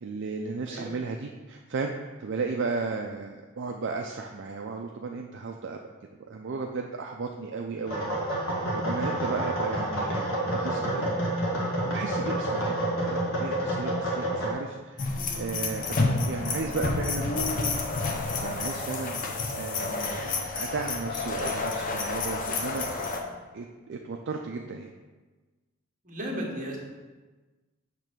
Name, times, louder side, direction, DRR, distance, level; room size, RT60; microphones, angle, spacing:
voice 1, 0.0-1.9 2.2-5.8 6.3-11.1 11.8-17.3 18.4-19.2 19.5-22.9 23.5-24.9, right 4 dB, 60° right, 2 dB, 0.4 m, -35 dB
sound 1, 7.9-14.5, right 1 dB, 90° left, 1.7 m, -29 dB
sound 2, 15.0-23.2, left 3 dB, 40° left, 0.7 m, -29 dB
voice 2, 26.0-26.8, equal, 40° right, -2 dB, 1.3 m, -34 dB
6.8 x 3.2 x 6.0 m, 1.3 s
head